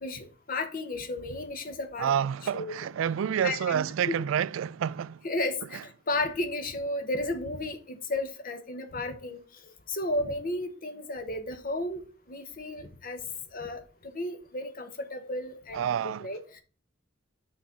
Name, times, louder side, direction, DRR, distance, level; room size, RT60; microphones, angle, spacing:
voice 1, 0.0-2.1 2.5-2.7 3.4-4.2 5.2-9.4 9.9-12.0 12.3-13.2 13.5-16.6, left 2 dB, 45° left, 1.0 m, -33 dB
voice 2, 2.0-5.2 15.7-16.3, right 8 dB, 85° right, 0.3 m, -28 dB
6.3 x 4.0 x 5.8 m
head